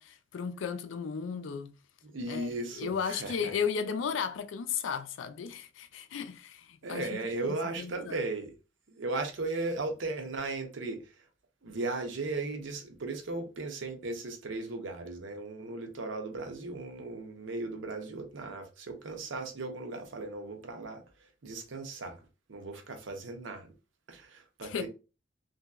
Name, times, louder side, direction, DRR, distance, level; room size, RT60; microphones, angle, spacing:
voice 1, 0.0-1.7 2.3-2.5 2.8-7.1 7.4-8.2 24.6-24.9, left 6 dB, 80° left, 0.4 m, -35 dB
voice 2, 2.0-3.5 6.8-8.5 8.9-11.1 11.6-21.0 21.4-22.2 22.5-23.7 24.1-24.9, right 3 dB, 80° right, 0.7 m, -36 dB
3.0 x 2.6 x 2.3 m
head